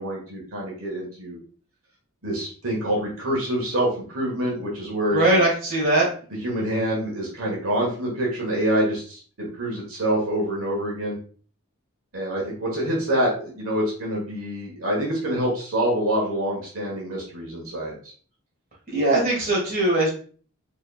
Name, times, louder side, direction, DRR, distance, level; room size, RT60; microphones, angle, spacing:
voice 1, 0.0-1.4 2.2-5.2 6.4-11.2 12.1-17.9, right 1 dB, 75° right, -3 dB, 1.4 m, -26 dB
voice 2, 5.1-6.1 18.9-20.1, right 2 dB, 40° right, -4 dB, 1.6 m, -20 dB
4.7 x 3.0 x 2.3 m, 0.42 s
head